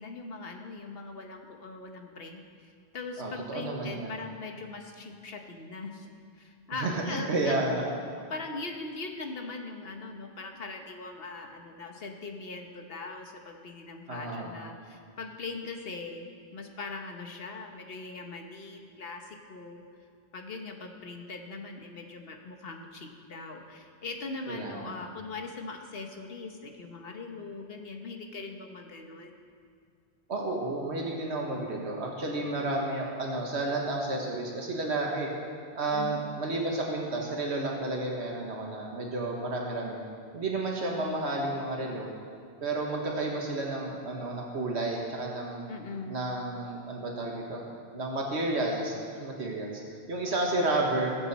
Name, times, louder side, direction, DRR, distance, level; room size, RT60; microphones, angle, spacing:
voice 1, 0.0-2.7 2.9-6.1 6.4-7.6 8.2-19.8 20.3-29.4 35.9-36.2 45.7-46.2, left 3 dB, 65° left, 4 dB, 1.3 m, -41 dB
voice 2, 3.2-4.2 6.7-7.8 14.1-14.5 24.5-24.9 30.3-35.3 35.8-40.0 40.3-42.1 42.6-45.6 46.1-47.6 47.9-51.3, right 2 dB, 85° right, -1 dB, 1.7 m, -31 dB
20.5 x 7.9 x 4.2 m, 2.2 s
omnidirectional pair, 1.1 m